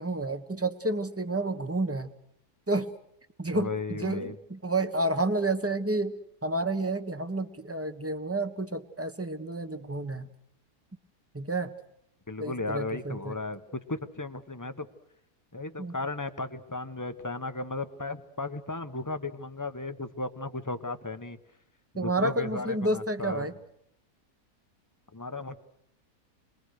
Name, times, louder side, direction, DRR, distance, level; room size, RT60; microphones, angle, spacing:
voice 1, 0.0-2.1 2.7-2.9 3.4-6.2 6.4-10.3 11.3-11.7 12.4-13.3 15.8-16.0 22.0-23.5, right 2 dB, 10° right, 10 dB, 1.1 m, -30 dB
voice 2, 3.5-4.3 12.3-13.6 13.9-14.9 15.5-21.4 21.9-23.5 25.1-25.6, left 3 dB, 15° left, 9 dB, 1.0 m, -35 dB
27.5 x 21.5 x 6.5 m, 0.76 s
omnidirectional pair, 1.7 m